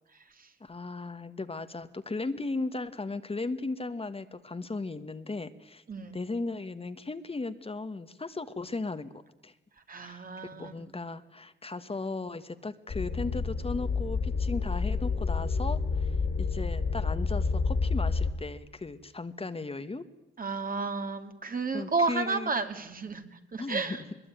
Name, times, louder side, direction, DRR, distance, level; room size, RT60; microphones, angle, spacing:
voice 1, 0.6-5.8 6.1-9.1 9.4-9.5 10.0-10.2 10.5-20.0 21.7-22.5 23.6-24.0, left 3 dB, 30° left, 11 dB, 1.4 m, -36 dB
voice 2, 9.9-10.8 20.4-24.0, right 4 dB, 45° right, 7 dB, 2.6 m, -32 dB
sound 1, 12.9-18.3, left 4 dB, 60° left, 2.8 m, -29 dB
22.0 x 21.5 x 9.2 m, 0.97 s
cardioid pair, 70°, 19 cm